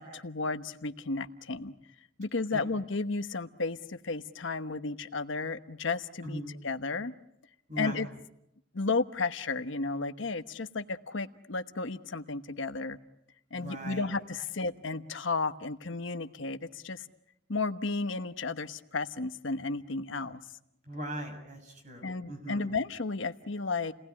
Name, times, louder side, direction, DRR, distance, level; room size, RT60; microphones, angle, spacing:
voice 1, 0.0-1.7 2.2-7.1 7.8-8.1 8.7-13.0 13.5-17.1 17.5-20.4 22.0-23.9, left 3 dB, 70° left, 9 dB, 1.1 m, -33 dB
voice 2, 6.2-6.5 7.7-8.0 13.5-14.1 20.9-22.7, right 1 dB, 35° right, 4 dB, 6.8 m, -39 dB
30.0 x 19.5 x 9.8 m, 0.81 s
head